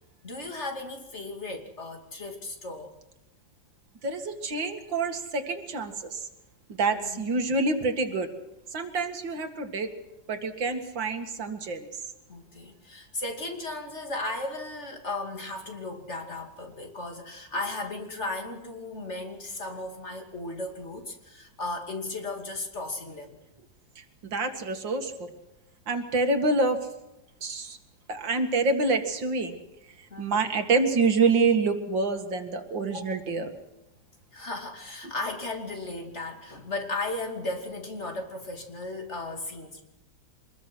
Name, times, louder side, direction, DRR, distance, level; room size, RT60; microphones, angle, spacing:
voice 1, 0.2-2.9 6.9-7.2 12.3-23.4 30.1-30.5 32.9-33.2 34.3-39.8, left 2 dB, 40° left, 3 dB, 3.0 m, -36 dB
voice 2, 4.0-6.3 6.8-8.3 8.7-9.9 10.3-12.0 24.0-25.3 25.9-26.8 27.4-27.8 28.1-29.6 30.0-33.5, right 3 dB, 90° right, 6 dB, 2.7 m, -27 dB
25.0 x 21.0 x 6.2 m, 0.93 s
omnidirectional pair, 2.0 m